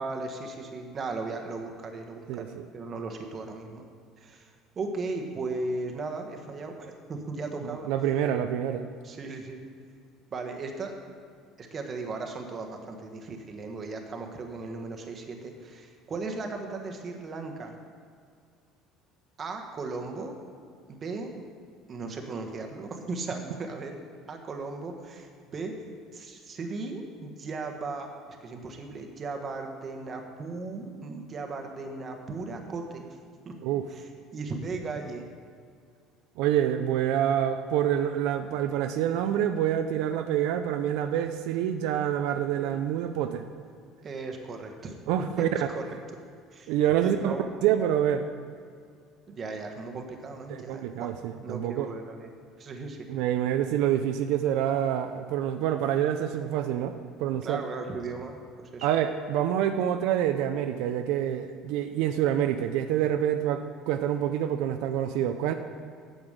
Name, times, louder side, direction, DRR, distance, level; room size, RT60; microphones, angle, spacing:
voice 1, 0.0-3.9 4.2-7.9 9.0-9.6 10.3-10.9 11.6-17.8 19.4-20.3 20.9-21.3 21.9-24.0 24.3-25.7 26.1-33.1 33.4-33.5 33.9-35.2 42.6-42.8 44.0-44.9 45.4-45.8 46.5-46.7 47.0-47.5 49.3-52.3 52.6-53.0 57.4-58.9, right 3 dB, 30° right, 4 dB, 1.2 m, -37 dB
voice 2, 2.3-2.7 7.8-8.9 33.6-33.9 36.4-43.4 45.1-45.7 46.7-47.3 47.6-48.2 50.5-51.9 53.1-56.9 57.2-57.6 58.8-65.5, right 10 dB, 75° right, 8 dB, 0.5 m, -27 dB
8.8 x 7.9 x 6.5 m, 2.2 s
cardioid pair, 150°, 0 cm